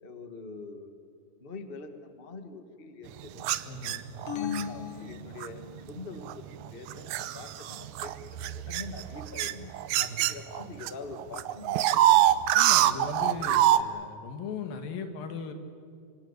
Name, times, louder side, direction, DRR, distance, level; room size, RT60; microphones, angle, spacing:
voice 1, 0.0-0.9 1.4-3.5 4.3-9.7 10.0-12.5, left 3 dB, 40° left, 7 dB, 0.8 m, -44 dB
sound 1, 3.4-4.7 5.4-5.7 6.3-10.9 11.2-13.8, right 13 dB, 75° right, 1.8 m, -25 dB
voice 2, 3.6-4.1 10.0-10.3 12.5-15.5, left 5 dB, 80° left, 7 dB, 3.7 m, -38 dB
sound 2, 4.3-5.9, left 8 dB, 55° left, 1.8 m, -36 dB
26.5 x 26.0 x 8.2 m, 2.4 s
omnidirectional pair, 4.1 m